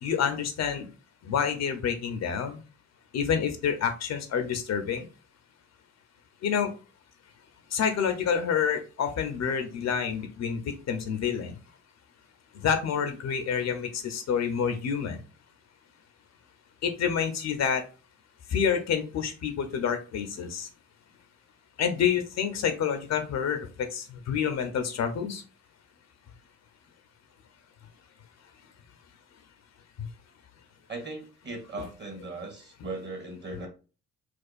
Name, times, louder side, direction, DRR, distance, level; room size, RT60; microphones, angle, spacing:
voice 1, 0.0-0.9 1.2-2.6 3.1-5.1 6.4-6.7 7.7-11.6 12.6-15.2 16.8-17.8 18.5-20.7 21.8-25.4 30.0-30.1, left 7 dB, 60° left, 7 dB, 0.7 m, -28 dB
voice 2, 30.9-33.7, right 2 dB, 35° right, 2 dB, 1.6 m, -38 dB
4.3 x 2.4 x 2.4 m, 0.34 s
cardioid pair, 90°, 30 cm